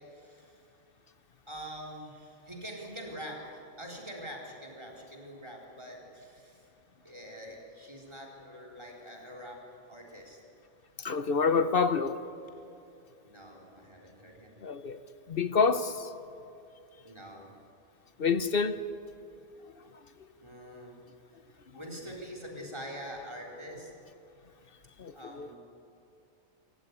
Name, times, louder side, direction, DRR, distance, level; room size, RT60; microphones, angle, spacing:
voice 1, 0.1-0.6 1.5-6.7 7.0-9.6 9.9-10.4 13.2-14.6 17.0-17.5 20.4-21.0 21.7-23.9 25.1-25.6, equal, 25° right, -1 dB, 4.3 m, -44 dB
voice 2, 11.0-12.2 14.6-15.0 15.3-16.1 18.2-18.8 25.0-25.5, left 5 dB, 55° left, 12 dB, 1.0 m, -27 dB
27.0 x 14.5 x 9.8 m, 2.7 s
omnidirectional pair, 1.2 m